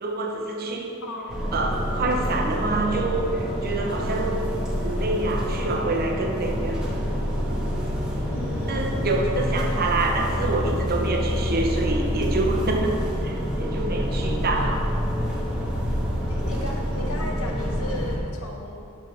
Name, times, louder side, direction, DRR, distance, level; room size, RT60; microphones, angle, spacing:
voice 1, 0.0-0.9 1.5-4.5 4.8-6.8 7.5-7.8 8.7-14.9, right 2 dB, 45° right, 2 dB, 0.8 m, -27 dB
voice 2, 1.0-1.4 8.3-9.1 16.3-18.8, left 1 dB, 75° left, 1 dB, 0.9 m, -36 dB
sound 1, 1.3-18.2, equal, 5° right, 1.3 m, -27 dB
12.0 x 5.4 x 3.3 m, 2.6 s
head